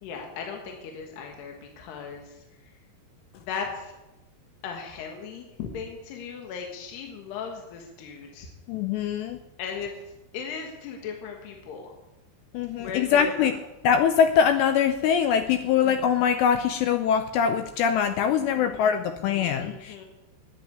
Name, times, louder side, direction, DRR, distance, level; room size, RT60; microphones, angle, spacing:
voice 1, 0.0-2.4 3.3-3.9 4.6-8.5 9.6-9.9 10.3-11.9 12.8-13.6 15.6-15.9 18.4-19.1 19.6-20.1, left 6 dB, 65° left, 2 dB, 3.2 m, -37 dB
voice 2, 8.7-9.4 12.5-13.6 13.8-20.1, left 7 dB, 90° left, 8 dB, 2.5 m, -23 dB
10.0 x 9.3 x 9.2 m, 0.97 s
omnidirectional pair, 5.6 m